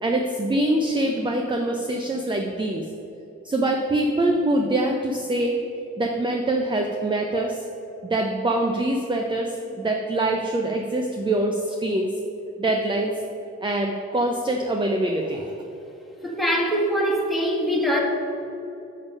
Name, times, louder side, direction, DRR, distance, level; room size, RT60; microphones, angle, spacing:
voice 1, 0.0-2.8 3.4-5.6 6.0-7.6 8.0-12.1 12.6-13.1 13.6-15.5, right 1 dB, 15° right, 3 dB, 0.7 m, -24 dB
voice 2, 16.2-18.0, equal, ahead, -1 dB, 1.9 m, -23 dB
7.1 x 6.8 x 5.4 m, 2.9 s
cardioid pair, 90°, 30 cm